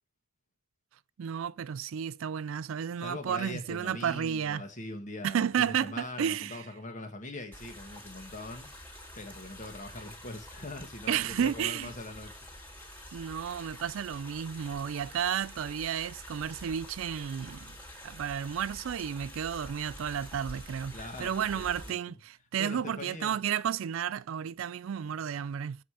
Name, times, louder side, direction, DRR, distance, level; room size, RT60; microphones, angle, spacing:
voice 1, 1.2-4.6 5.2-6.6 11.1-11.9 13.1-17.7 18.0-25.8, right 8 dB, 75° right, 0.3 m, -32 dB
voice 2, 3.0-8.7 9.1-12.4 20.9-22.2 22.6-23.3, left 2 dB, 35° left, 1.7 m, -42 dB
sound 1, 7.5-21.9, left 1 dB, 10° left, 2.0 m, -47 dB
7.7 x 4.9 x 7.3 m
head